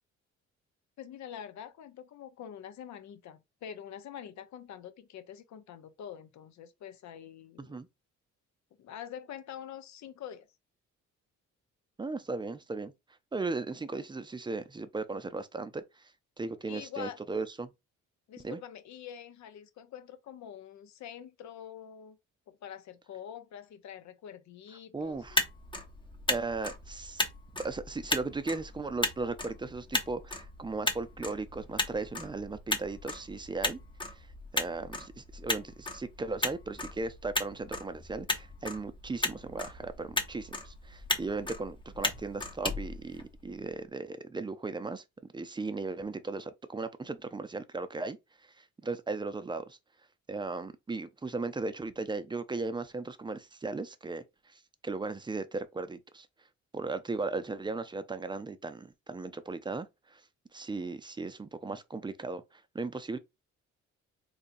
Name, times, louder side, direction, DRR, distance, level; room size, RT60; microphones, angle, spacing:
voice 1, 1.0-7.8 8.8-10.5 16.6-17.2 18.3-22.2 22.5-25.4, left 9 dB, 65° left, 0.7 m, -45 dB
voice 2, 12.0-12.9 13.3-16.1 16.4-17.7 18.4-18.6 24.9-25.4 26.3-27.3 27.5-33.8 34.1-34.3 34.5-45.0 45.3-48.2 48.6-49.8 50.3-56.3 56.7-60.2 60.5-63.2, right 3 dB, 15° right, 0.5 m, -37 dB
Motor vehicle (road), 25.1-43.7, left 2 dB, 15° left, 0.8 m, -36 dB
3.9 x 2.8 x 2.5 m
cardioid pair, 90°, 30 cm